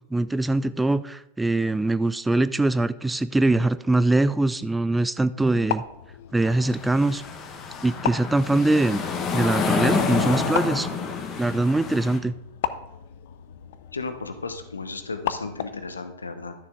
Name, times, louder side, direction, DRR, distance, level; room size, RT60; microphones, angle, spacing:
voice 1, 0.1-5.8 6.3-7.2 7.8-10.9 11.4-12.3, right 2 dB, 5° right, 14 dB, 0.3 m, -22 dB
sound 1, 5.4-16.0, left 10 dB, 55° left, 0.5 m, -36 dB
sound 2, 6.4-12.2, left 5 dB, 30° left, 1.2 m, -28 dB
voice 2, 13.9-16.5, left 3 dB, 75° left, 9 dB, 0.9 m, -34 dB
12.5 x 6.8 x 3.7 m, 0.85 s
figure-of-eight pair, 90°, 0 cm